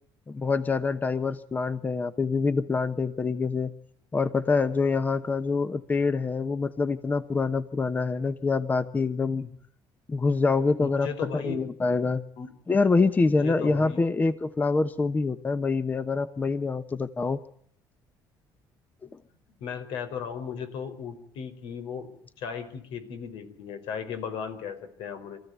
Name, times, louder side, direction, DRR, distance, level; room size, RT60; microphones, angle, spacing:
voice 1, 0.3-3.7 4.1-9.4 10.1-12.2 12.7-17.4, left 4 dB, 20° left, 12 dB, 1.0 m, -25 dB
voice 2, 10.8-11.6 12.4-12.5 13.4-14.0 19.6-22.1 22.4-25.4, left 6 dB, 80° left, 10 dB, 4.8 m, -36 dB
26.5 x 15.0 x 9.5 m, 0.65 s
cardioid pair, 135°, 8 cm